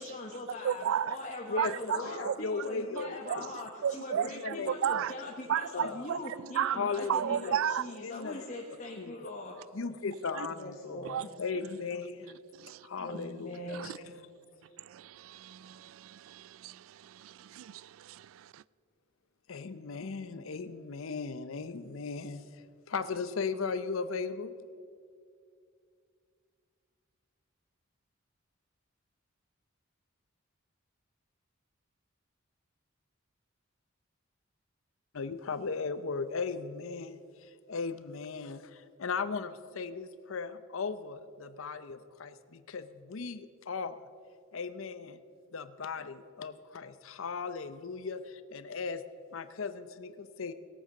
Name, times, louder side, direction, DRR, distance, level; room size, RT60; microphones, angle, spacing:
voice 1, 0.0-9.6 10.5-11.3 13.0-14.1, left 2 dB, 40° left, 1.2 m, -42 dB
voice 2, 0.6-1.2 1.6-2.4 3.3-3.5 3.8-5.1 5.5-6.8 7.1-7.9 10.3-10.5 11.0-11.2 12.6-12.9 13.7-14.0 14.8-18.6, right 9 dB, 70° right, 0.3 m, -33 dB
voice 3, 1.5-3.5 4.1-5.0 5.7-6.0 6.7-7.6 8.0-8.5 9.0-9.3 9.7-12.4 12.8-14.2 19.5-22.4 22.9-24.6 35.1-44.0 44.5-45.2 45.5-49.0 49.3-50.5, left 4 dB, 70° left, 0.6 m, -37 dB
17.5 x 8.8 x 6.5 m
head